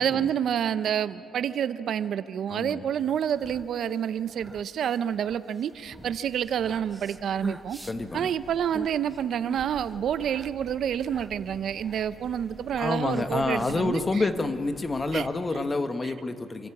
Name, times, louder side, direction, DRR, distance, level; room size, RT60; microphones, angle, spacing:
voice 1, 0.0-7.8 8.1-14.2 15.1-15.3 15.5-15.6 16.0-16.1, right 9 dB, 65° right, 14 dB, 0.6 m, -28 dB
voice 2, 2.5-2.8 7.9-8.3 12.8-16.7, left 3 dB, 25° left, 9 dB, 1.3 m, -28 dB
sound 1, 3.1-14.3, right 2 dB, 15° right, 0.9 m, -44 dB
sound 2, 5.7-15.2, equal, 10° left, 6.4 m, -51 dB
26.5 x 13.5 x 8.5 m, 2.7 s
cardioid pair, 90°, 0 cm